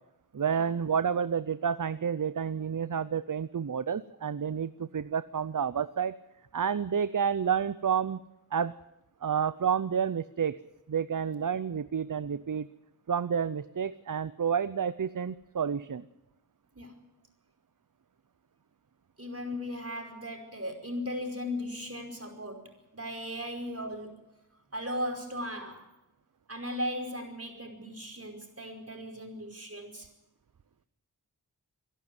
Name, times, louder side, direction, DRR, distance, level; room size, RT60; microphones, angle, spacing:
voice 1, 0.3-6.2 6.5-8.2 8.5-8.7 9.2-10.6 10.9-12.7 13.1-16.0, right 7 dB, 55° right, 15 dB, 0.6 m, -30 dB
voice 2, 19.2-24.3 24.7-25.9 26.5-30.1, equal, 40° right, 3 dB, 5.1 m, -37 dB
25.5 x 11.5 x 9.5 m, 0.91 s
wide cardioid pair, 50°, 38 cm